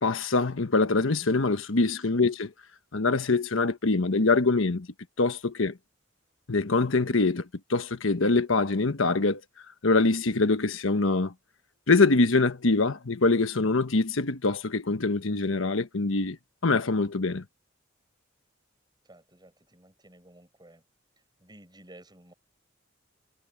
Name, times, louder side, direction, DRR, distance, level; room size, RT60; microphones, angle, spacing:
voice 1, 0.0-2.5 2.9-4.9 5.2-5.8 6.5-9.4 9.8-11.3 11.9-16.4 16.6-17.4, left 3 dB, 80° left, 1.2 m, -24 dB
voice 2, 19.0-20.8 21.4-22.3, right 1 dB, 20° right, 8.0 m, -53 dB
head